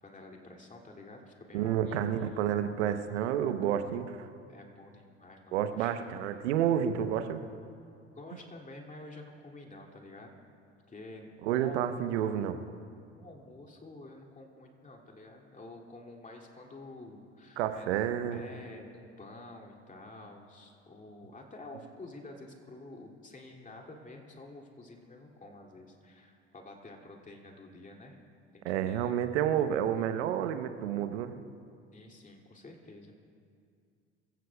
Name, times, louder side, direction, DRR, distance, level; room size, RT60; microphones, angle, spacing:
voice 1, 0.0-2.0 4.5-6.0 8.1-10.4 10.9-11.9 13.1-18.0 18.3-28.2 28.5-29.2 31.9-33.1, left 2 dB, 20° left, 1 dB, 2.6 m, -49 dB
voice 2, 1.5-4.3 5.5-7.4 11.4-12.6 17.6-18.4 28.6-31.4, right 10 dB, 75° right, 10 dB, 0.9 m, -30 dB
25.0 x 15.0 x 2.3 m, 2.4 s
hypercardioid pair, 60°, 35 cm